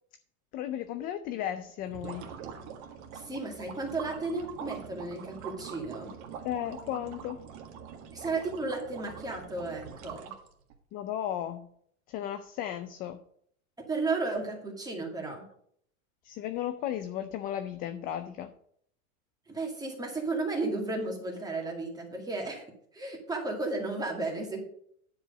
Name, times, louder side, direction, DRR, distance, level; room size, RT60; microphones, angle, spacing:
voice 1, 0.5-2.3 6.4-7.4 10.9-11.7 12.1-13.2 16.2-18.5, left 11 dB, 25° left, 9 dB, 0.3 m, -35 dB
sound 1, 1.8-10.8, right 7 dB, 50° right, 1.7 m, -44 dB
voice 2, 3.1-6.2 8.1-10.3 13.9-15.4 19.5-22.6 22.9-24.6, right 3 dB, 10° right, 0 dB, 2.2 m, -33 dB
10.0 x 4.8 x 6.4 m, 0.66 s
supercardioid pair, 130°, 41 cm